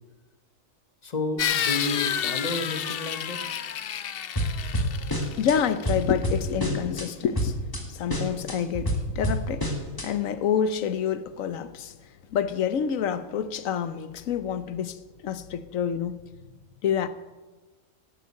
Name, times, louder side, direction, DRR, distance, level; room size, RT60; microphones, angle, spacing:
voice 1, 1.0-3.4, left 2 dB, 35° left, 1.2 m, -31 dB
sound 1, 1.4-6.1, left 9 dB, 60° left, 0.7 m, -30 dB
sound 2, 4.3-5.6 5.8-7.1 7.3-7.8 8.1-10.1, equal, 15° left, 1.7 m, -28 dB
voice 2, 5.4-7.6 7.9-9.7 10.0-11.9 12.3-15.0 15.2-16.2 16.8-17.1, left 8 dB, 75° left, 1.2 m, -27 dB
12.0 x 8.3 x 8.4 m
omnidirectional pair, 1.4 m